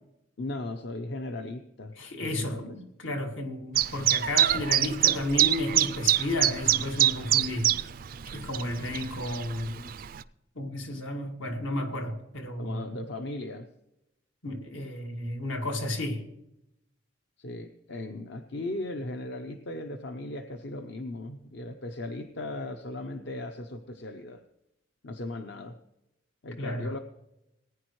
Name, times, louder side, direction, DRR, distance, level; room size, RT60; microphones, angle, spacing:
voice 1, 0.4-1.9 2.2-2.6 12.6-13.7 17.4-24.4 25.0-25.8 26.4-27.0, left 2 dB, 60° left, 0.7 m, -37 dB
voice 2, 2.0-7.8 8.3-9.9 10.6-12.8 14.4-16.2 26.6-26.9, left 1 dB, 75° left, 1.9 m, -32 dB
Chirp tweet, 3.7-10.2, right 12 dB, 45° right, 0.3 m, -26 dB
19.0 x 9.7 x 3.1 m
head